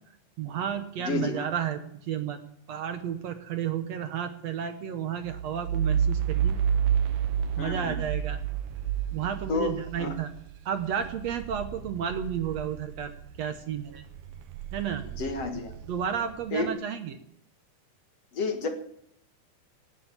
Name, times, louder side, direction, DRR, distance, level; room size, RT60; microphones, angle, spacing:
voice 1, 0.4-2.4 2.7-6.6 7.6-8.4 9.1-10.3 10.7-14.0 14.7-15.0 15.9-17.2, right 8 dB, 65° right, 7 dB, 2.0 m, -32 dB
voice 2, 1.1-1.4 7.6-8.0 9.5-10.2 15.2-15.7 16.5-16.7 18.3-18.7, left 3 dB, 55° left, 5 dB, 2.6 m, -30 dB
sound 1, 5.3-13.5 13.9-16.5, right 8 dB, 85° right, 2.4 m, -30 dB
17.5 x 9.1 x 8.7 m, 0.72 s
omnidirectional pair, 3.7 m